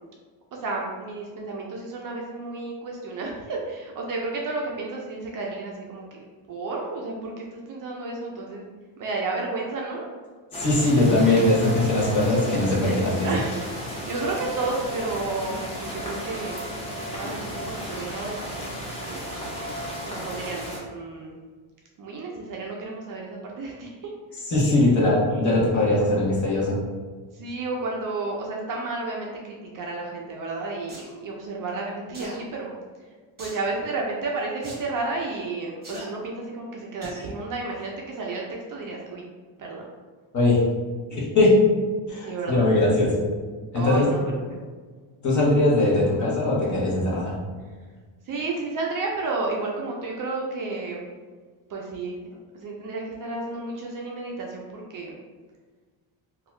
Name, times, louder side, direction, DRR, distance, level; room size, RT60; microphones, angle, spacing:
voice 1, 0.6-8.6 9.0-10.1 11.4-11.6 13.2-16.6 17.1-19.2 20.0-21.4 22.0-24.1 25.3-25.4 27.3-32.7 33.4-39.2 39.6-39.8 42.2-43.1 43.7-44.2 44.5-44.7 48.3-51.1 51.7-52.2 52.5-55.1, right 3 dB, 45° right, -1 dB, 0.5 m, -32 dB
sound 1, 10.5-20.8, equal, 15° left, 0.6 m, -34 dB
voice 2, 10.6-13.3 24.5-26.8 40.3-40.7 41.1-41.6 42.1-43.2 43.7-44.1 45.2-47.4, left 2 dB, 35° left, -5 dB, 1.0 m, -21 dB
sound 2, 30.9-31.1 32.1-32.4 33.4-33.7 34.6-34.8 35.8-36.1 37.0-37.3 37.8-37.9, right 1 dB, 20° right, 0.9 m, -39 dB
2.7 x 2.4 x 3.1 m, 1.5 s
cardioid pair, 130°, 48 cm